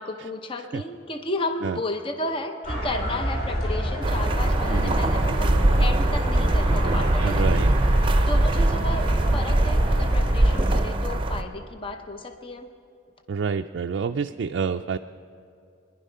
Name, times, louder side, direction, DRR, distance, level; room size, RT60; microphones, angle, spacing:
voice 1, 0.0-7.8 8.0-12.7, left 2 dB, 30° left, 6 dB, 0.7 m, -33 dB
sound 1, 2.6-10.6, equal, 50° left, 5.1 m, -28 dB
sound 2, 4.0-11.4, right 1 dB, 25° right, 0.6 m, -22 dB
voice 2, 7.2-7.7 13.3-15.0, right 6 dB, 65° right, 6 dB, 0.4 m, -28 dB
23.0 x 10.5 x 5.6 m, 2.5 s
head